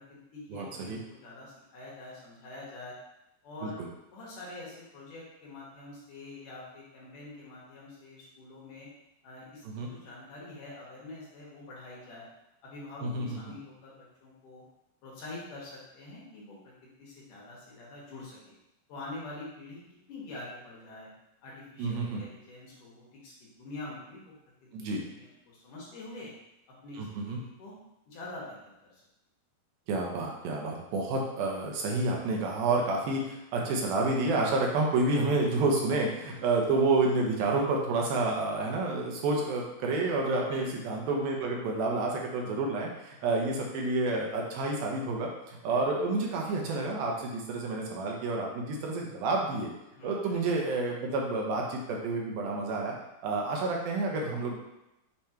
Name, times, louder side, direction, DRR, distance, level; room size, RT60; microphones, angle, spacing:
voice 1, 0.0-2.9 3.4-3.8 4.1-8.9 9.2-12.3 12.6-14.6 15.0-18.6 18.9-21.1 21.4-24.3 24.6-26.3 26.8-27.7 28.1-28.6 28.9-29.0 36.3-36.5 40.5-40.8 43.2-43.4 50.0-50.5, left 2 dB, 65° left, -5 dB, 2.8 m, -46 dB
voice 2, 0.5-1.0 3.6-3.7 9.7-9.9 13.0-13.4 21.8-22.2 24.7-25.0 27.0-27.4 29.9-49.7 50.0-52.9 53.2-54.6, right 3 dB, 75° right, -1 dB, 2.7 m, -29 dB
7.1 x 3.2 x 4.4 m, 0.90 s
omnidirectional pair, 4.4 m